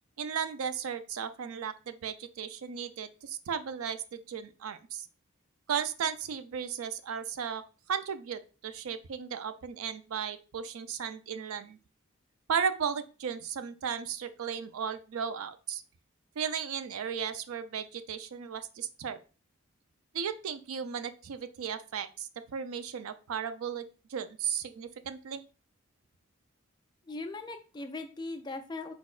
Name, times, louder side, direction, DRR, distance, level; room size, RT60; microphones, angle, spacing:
voice 1, 0.2-5.1 5.7-7.6 7.9-11.8 12.5-15.8 16.4-19.2 20.1-25.4, right 7 dB, 85° right, 12 dB, 0.4 m, -35 dB
voice 2, 27.1-28.9, left 2 dB, 20° left, 6 dB, 0.4 m, -39 dB
4.6 x 4.1 x 2.4 m, 0.34 s
head